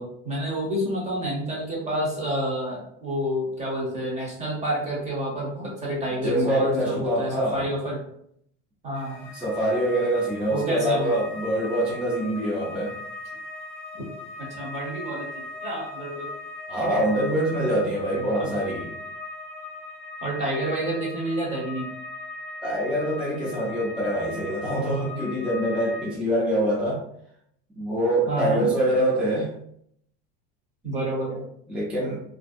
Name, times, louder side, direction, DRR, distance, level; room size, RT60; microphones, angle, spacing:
voice 1, 0.0-8.0 8.8-9.3 10.5-11.1 14.5-16.3 18.4-18.5 20.2-21.9 28.3-28.7 30.8-31.4, right 1 dB, 20° right, -4 dB, 0.9 m, -29 dB
voice 2, 6.2-7.7 9.3-13.0 16.7-18.9 22.6-27.0 27.7-29.5 31.7-32.2, right 1 dB, 5° right, -6 dB, 0.4 m, -25 dB
sound 1, 8.9-26.1, left 2 dB, 45° left, 0.6 m, -39 dB
2.6 x 2.2 x 2.4 m, 0.70 s
cardioid pair, 150°, 32 cm